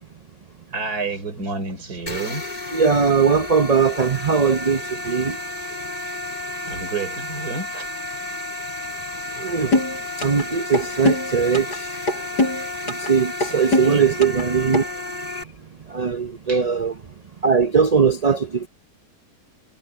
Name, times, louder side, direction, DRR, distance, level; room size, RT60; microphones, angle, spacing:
voice 1, 0.7-2.5 6.7-7.9 13.5-14.1 16.5-16.7, right 4 dB, 65° right, 4.2 m, -30 dB
sound 1, 2.1-15.4, left 2 dB, 25° left, 4.1 m, -32 dB
voice 2, 2.7-5.4 9.4-9.8 10.2-12.0 12.9-14.8 15.2-15.5 15.9-16.9 17.4-18.7, right 6 dB, 50° right, 0.4 m, -20 dB
sound 2, 9.7-10.4 10.7-11.8 12.1-13.1 13.4-14.4 14.7-14.8, left 2 dB, 85° left, 6.6 m, -21 dB
omnidirectional pair, 1.7 m